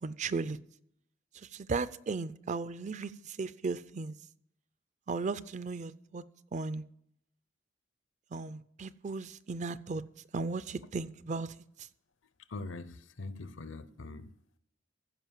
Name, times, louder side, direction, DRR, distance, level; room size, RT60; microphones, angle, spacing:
voice 1, 0.0-0.6 1.5-4.1 5.1-6.2 6.5-6.8 8.3-10.0 10.3-11.5, right 4 dB, 40° right, 0.4 m, -36 dB
voice 2, 12.5-14.3, left 3 dB, 75° left, 0.7 m, -42 dB
15.0 x 5.2 x 7.2 m
head